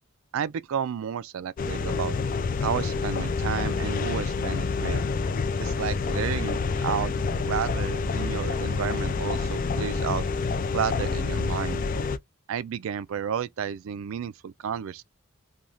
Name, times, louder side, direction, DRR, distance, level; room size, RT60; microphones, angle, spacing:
voice 1, 0.3-2.2 2.6-5.0 5.6-7.1 7.5-10.3 10.7-11.9 12.5-15.0, right 8 dB, 70° right, 0.3 m, -31 dB
sound 1, 1.6-12.2, left 4 dB, 40° left, 0.3 m, -28 dB
3.1 x 2.3 x 2.5 m
head